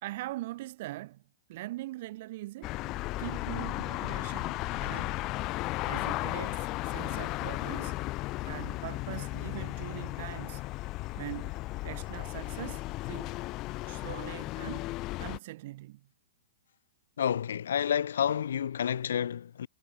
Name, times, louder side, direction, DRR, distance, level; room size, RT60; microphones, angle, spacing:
voice 1, 0.0-1.2 1.5-2.8 3.2-5.3 5.8-8.0 8.4-10.6 11.1-11.5 11.8-13.3 13.9-14.9 15.2-16.0, right 17 dB, 50° right, 1.9 m, -42 dB
sound 1, 2.6-15.4, left 20 dB, 30° left, 0.9 m, -35 dB
sound 2, 2.7-8.4, right 7 dB, 85° right, 2.8 m, -61 dB
voice 2, 17.2-19.7, left 9 dB, 75° left, 0.5 m, -29 dB
hypercardioid pair, 145°, 0 cm